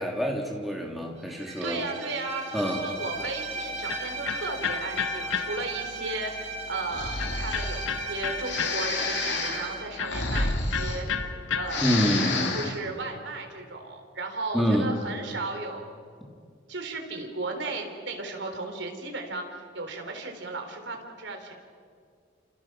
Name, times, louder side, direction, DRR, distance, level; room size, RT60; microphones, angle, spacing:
voice 1, 0.0-1.8 2.5-2.8 11.8-12.6 14.5-14.9, equal, ahead, 0 dB, 3.0 m, -26 dB
Bowed string instrument, 1.3-9.9, right 3 dB, 35° right, 2.5 m, -36 dB
voice 2, 1.6-11.1 11.6-11.9 12.5-15.9 16.7-21.5, right 2 dB, 70° right, 3 dB, 4.0 m, -35 dB
Electric guitar, 3.1-12.2, left 6 dB, 85° left, 1.3 m, -35 dB
Breathing, 6.9-7.9 8.4-11.4 11.6-12.8, left 3 dB, 65° left, 3.1 m, -30 dB
29.0 x 28.0 x 6.2 m, 2.2 s
head